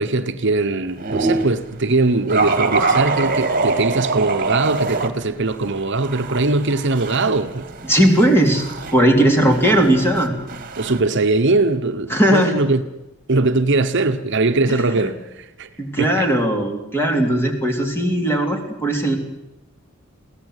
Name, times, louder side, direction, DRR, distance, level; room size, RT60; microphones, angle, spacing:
voice 1, 0.0-7.6 10.8-12.8 13.3-15.7 16.0-16.3, right 3 dB, 60° right, 1.1 m, -20 dB
sound 1, 1.0-1.6 2.3-5.1 5.5-11.0, right 3 dB, 40° right, 1.9 m, -24 dB
voice 2, 7.9-8.6 8.9-10.3 12.1-12.5 14.7-15.1 15.8-19.2, right 1 dB, 10° left, 3.3 m, -17 dB
23.0 x 17.0 x 8.2 m
head